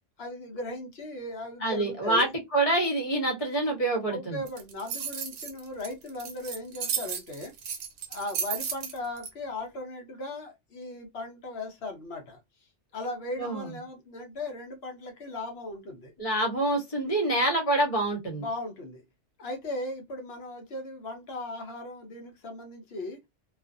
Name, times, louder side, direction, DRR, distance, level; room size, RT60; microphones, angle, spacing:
voice 1, 0.2-2.3 4.1-7.5 8.1-12.4 12.9-16.1 18.4-19.0 19.4-23.2, left 2 dB, 60° left, 0.9 m, -37 dB
voice 2, 1.6-4.4 13.4-13.7 16.2-18.4, right 2 dB, 30° left, 0.9 m, -26 dB
sound 1, 4.5-9.3, right 7 dB, 80° right, 1.0 m, -34 dB
2.4 x 2.4 x 2.5 m
omnidirectional pair, 1.3 m